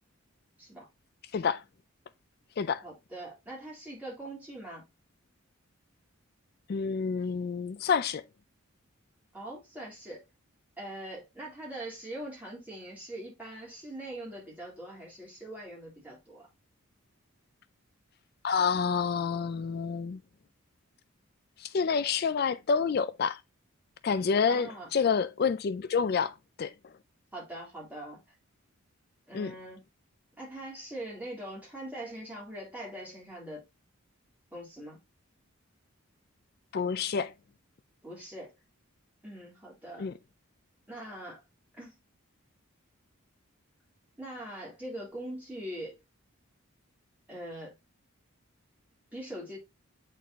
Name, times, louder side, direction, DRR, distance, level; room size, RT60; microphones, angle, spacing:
voice 1, 2.8-4.8 9.3-10.2 10.8-16.4 24.5-24.9 27.3-28.2 29.3-29.9 30.4-33.6 34.5-35.0 38.0-38.5 39.2-40.1 40.9-41.4 41.8-42.0 44.2-46.0 47.3-47.7 49.1-49.6, right 1 dB, 10° right, 3.5 m, -42 dB
voice 2, 6.7-8.2 18.4-20.2 21.6-23.4 24.0-26.7 29.3-29.5 36.7-37.3 40.0-40.1, left 6 dB, 45° left, 0.3 m, -28 dB
8.4 x 4.2 x 2.9 m
head